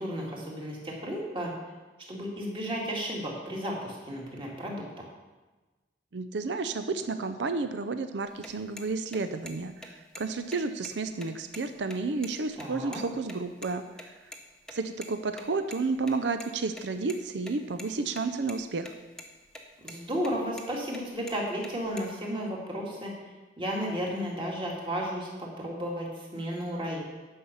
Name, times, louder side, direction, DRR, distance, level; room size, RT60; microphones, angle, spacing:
voice 1, 0.0-1.5 2.1-4.8 12.6-13.0 19.8-23.1 23.6-27.0, equal, 30° right, -3 dB, 2.1 m, -33 dB
voice 2, 6.1-14.1 14.7-18.9, right 4 dB, 85° right, 9 dB, 0.6 m, -31 dB
sound 1, 8.3-13.4 13.6-13.7 14.0-14.1 14.3-14.4 14.7-14.8 15.0-15.1 15.4-16.5 16.7-17.2 17.5-18.2 18.5-18.9 19.2-19.6 19.9-20.0 20.2-20.7 20.9-22.1, left 1 dB, 5° left, 0.8 m, -44 dB
10.0 x 5.6 x 7.1 m, 1.2 s
head